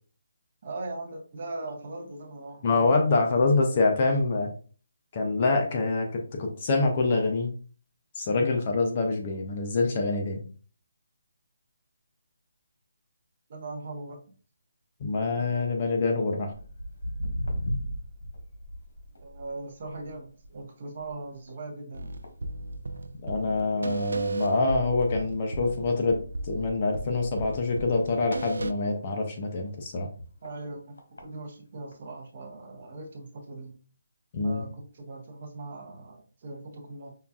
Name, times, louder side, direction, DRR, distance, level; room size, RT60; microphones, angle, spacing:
voice 1, 0.6-2.6 13.5-14.2 19.2-22.1 30.4-33.8 34.4-37.1, right 2 dB, 35° right, 2 dB, 0.7 m, -40 dB
voice 2, 2.6-4.5 5.1-7.5 8.2-10.4 15.0-16.5 23.2-26.2 26.4-30.1 34.3-34.6, left 3 dB, 25° left, 2 dB, 0.4 m, -25 dB
Walk footsteps, 16.5-23.2 23.5-23.9 24.4-24.5 25.2-25.3 25.7-25.8 25.9-26.0 26.6-26.8 27.5-29.0 29.6-29.7 30.4-30.5 31.0-31.2 31.9-32.0, equal, 85° left, 1.3 m, -37 dB
sound 1, 21.9-28.7, right 2 dB, 80° right, 0.3 m, -35 dB
5.4 x 2.3 x 2.3 m, 0.39 s
hypercardioid pair, 180°, 0 cm